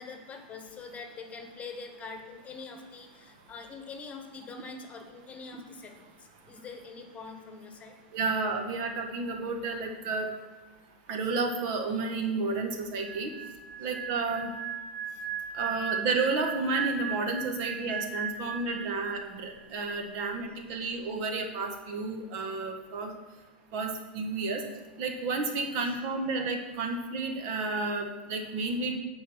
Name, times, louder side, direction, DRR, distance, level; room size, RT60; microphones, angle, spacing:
voice 1, 0.0-8.0 13.8-13.9 17.9-18.0 25.8-25.9, left 4 dB, 25° left, 4 dB, 1.3 m, -44 dB
voice 2, 8.1-10.3 11.1-13.3 13.8-14.5 15.5-23.1 23.7-24.6 25.0-28.9, right 3 dB, 55° right, 4 dB, 1.3 m, -31 dB
sound 1, 13.0-19.4 19.6-19.9, right 7 dB, 80° right, 1.2 m, -37 dB
9.4 x 3.9 x 6.1 m, 1.2 s
hypercardioid pair, 110°, 6 cm